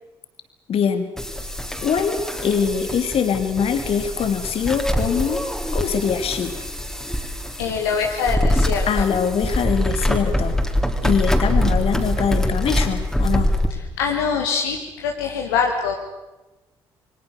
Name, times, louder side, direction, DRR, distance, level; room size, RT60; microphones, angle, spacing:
voice 1, 0.7-1.1 1.8-5.4 5.7-6.6 8.9-10.6 11.0-13.5, left 7 dB, 55° left, 8 dB, 2.8 m, -23 dB
sound 1, 1.2-13.7, left 1 dB, 5° left, 3.8 m, -24 dB
voice 2, 7.6-9.1 14.0-15.9, left 6 dB, 75° left, 1 dB, 1.8 m, -23 dB
28.0 x 23.5 x 6.7 m, 1.1 s
figure-of-eight pair, 40°, 12 cm